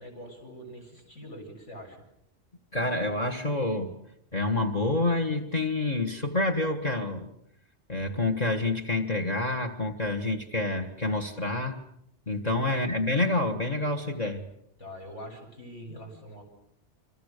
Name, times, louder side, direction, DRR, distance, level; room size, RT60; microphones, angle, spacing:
voice 1, 0.0-2.0 12.4-12.8 14.8-16.4, equal, 70° left, 2 dB, 7.8 m, -44 dB
voice 2, 2.7-4.0 4.3-7.3 7.9-11.8 12.3-14.5, left 2 dB, 35° left, 7 dB, 1.7 m, -28 dB
29.0 x 25.5 x 6.7 m, 0.76 s
omnidirectional pair, 1.3 m